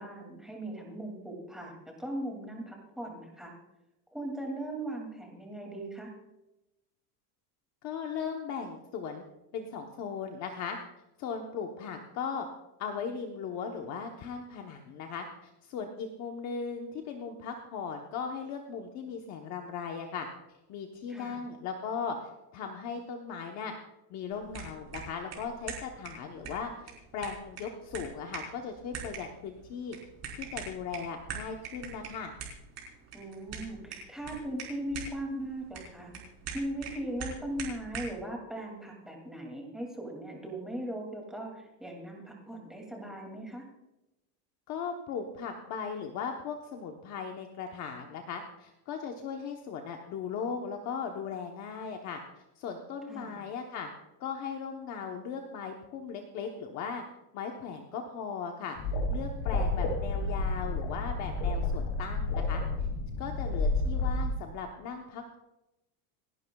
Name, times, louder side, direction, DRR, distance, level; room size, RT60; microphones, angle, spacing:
voice 1, 0.0-3.5 4.1-6.1 21.1-21.4 33.1-36.1 36.5-43.7 53.1-53.4, right 1 dB, ahead, 0 dB, 2.4 m, -39 dB
voice 2, 7.8-9.2 9.5-10.8 11.2-12.5 12.8-20.3 20.7-23.7 24.1-30.0 30.3-32.3 44.7-52.2 52.6-53.9 54.2-57.0 57.3-58.8 59.1-62.6 63.2-65.4, left 6 dB, 35° left, 3 dB, 1.0 m, -38 dB
sound 1, 24.3-38.2, right 5 dB, 30° right, 3.9 m, -44 dB
sound 2, 58.8-64.3, left 2 dB, 60° left, 5.3 m, -30 dB
28.0 x 11.0 x 2.3 m, 0.95 s
supercardioid pair, 170°, 48 cm